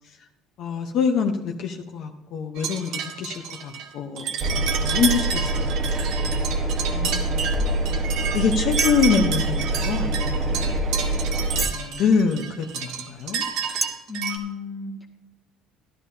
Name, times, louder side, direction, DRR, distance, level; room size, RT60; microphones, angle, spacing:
voice 1, 0.6-5.8 6.2-6.6 6.9-7.5 8.3-10.8 11.7-13.4, left 6 dB, 50° left, 3 dB, 0.9 m, -25 dB
sound 1, 2.5-14.4, right 7 dB, 65° right, 1.7 m, -31 dB
Engine, 4.4-11.7, right 2 dB, 35° right, 1.3 m, -25 dB
sound 2, 8.8-9.2 10.0-10.1 10.6-10.7 11.5-11.9 12.5-12.6 13.3-13.4 13.8-13.9, right 3 dB, 20° right, 0.6 m, -27 dB
voice 2, 14.1-15.1, left 6 dB, 10° left, -1 dB, 1.8 m, -33 dB
13.0 x 12.5 x 2.8 m, 0.99 s
cardioid pair, 150°, 0 cm